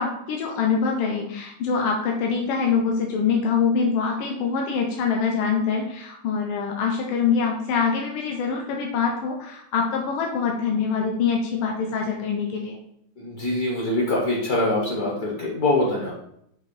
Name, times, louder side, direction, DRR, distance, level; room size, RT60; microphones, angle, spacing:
voice 1, 0.0-12.8, left 5 dB, 80° left, 1 dB, 1.4 m, -24 dB
voice 2, 13.2-16.1, left 2 dB, 55° left, -3 dB, 1.3 m, -24 dB
5.7 x 2.8 x 3.0 m, 0.73 s
omnidirectional pair, 2.3 m